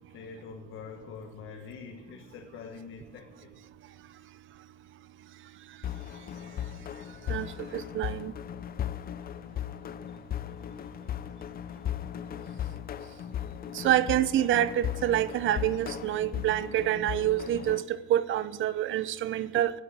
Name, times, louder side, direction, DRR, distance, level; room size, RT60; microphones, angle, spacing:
voice 1, 0.1-3.5, left 6 dB, 85° left, 2 dB, 1.4 m, -44 dB
sound 1, 5.8-17.8, left 10 dB, 50° left, 0.5 m, -37 dB
voice 2, 7.3-8.3 13.7-19.7, right 12 dB, 80° right, 16 dB, 0.7 m, -27 dB
11.5 x 9.7 x 8.4 m, 1.3 s
cardioid pair, 90°, 20 cm